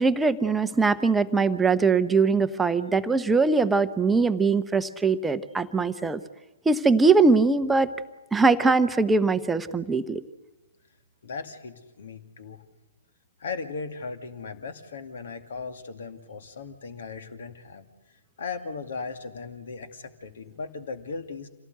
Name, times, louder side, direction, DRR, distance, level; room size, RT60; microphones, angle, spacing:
voice 1, 0.0-6.2 6.6-7.9 8.3-10.2, right 4 dB, 5° right, 10 dB, 0.9 m, -21 dB
voice 2, 11.2-12.7 13.4-17.9 18.4-21.5, left 4 dB, 55° left, 9 dB, 2.4 m, -37 dB
27.0 x 17.5 x 8.1 m, 1.1 s
figure-of-eight pair, 120°, 0 cm